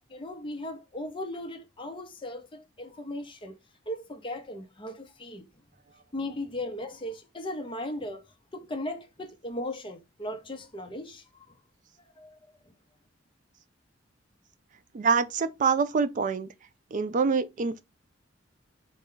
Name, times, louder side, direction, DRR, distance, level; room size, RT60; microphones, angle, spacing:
voice 1, 0.1-3.6 3.9-5.5 6.1-8.2 8.5-11.6 12.0-12.4, left 1 dB, 25° left, 0.7 m, -37 dB
voice 2, 14.9-16.5 16.9-17.8, right 5 dB, 40° right, 0.3 m, -25 dB
4.2 x 2.3 x 3.7 m
head